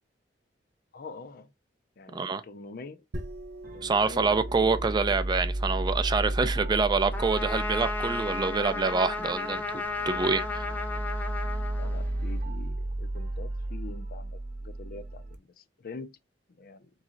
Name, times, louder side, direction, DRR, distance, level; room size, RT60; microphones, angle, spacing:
voice 1, 0.9-1.5 2.0-3.0 3.7-4.3 4.6-4.7 6.5-6.7 11.8-16.2 16.5-16.9, left 3 dB, 55° left, 0.5 m, -45 dB
voice 2, 2.1-2.4 3.8-10.7, right 4 dB, 25° right, 0.4 m, -26 dB
sound 1, 3.1-12.5, right 1 dB, 80° right, 0.8 m, -47 dB
sound 2, 3.6-15.4, right 1 dB, 45° right, 0.8 m, -34 dB
Trumpet, 7.1-12.4, left 3 dB, 10° left, 0.8 m, -34 dB
3.6 x 3.2 x 3.8 m
head